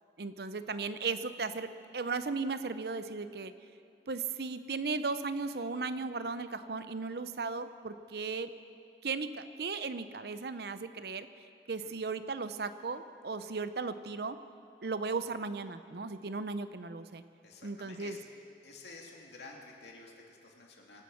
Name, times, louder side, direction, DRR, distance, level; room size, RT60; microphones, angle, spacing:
voice 1, 0.2-3.5 4.1-8.5 9.0-11.3 11.7-14.4 14.8-17.2 17.6-18.2, right 4 dB, 60° right, 12 dB, 0.6 m, -36 dB
voice 2, 17.4-18.2 18.6-21.0, left 3 dB, 70° left, -1 dB, 2.6 m, -51 dB
24.5 x 9.1 x 6.3 m, 2.5 s
head